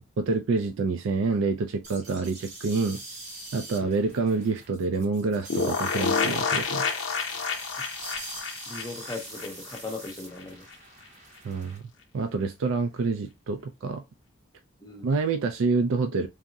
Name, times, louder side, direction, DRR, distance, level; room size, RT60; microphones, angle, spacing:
voice 1, 0.0-3.0 3.5-6.8 11.4-11.8 12.1-14.0 15.0-16.3, right 4 dB, 65° right, 0.4 m, -27 dB
sound 1, 1.8-11.8, right 2 dB, 30° right, 0.7 m, -43 dB
sound 2, 5.5-10.1 10.4-10.5 10.7-10.8, left 5 dB, 65° left, 0.7 m, -29 dB
voice 2, 8.7-10.6 14.8-15.1, left 3 dB, 20° left, 0.7 m, -38 dB
3.5 x 2.0 x 2.6 m
head